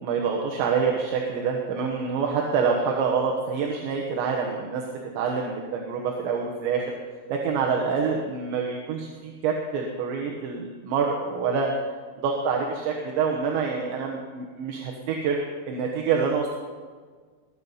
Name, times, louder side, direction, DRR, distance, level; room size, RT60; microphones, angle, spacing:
voice 1, 0.0-4.8 5.2-7.0 7.3-11.7 12.2-16.5, right 5 dB, 75° right, 0 dB, 3.4 m, -26 dB
20.5 x 9.3 x 5.6 m, 1.5 s
omnidirectional pair, 5.3 m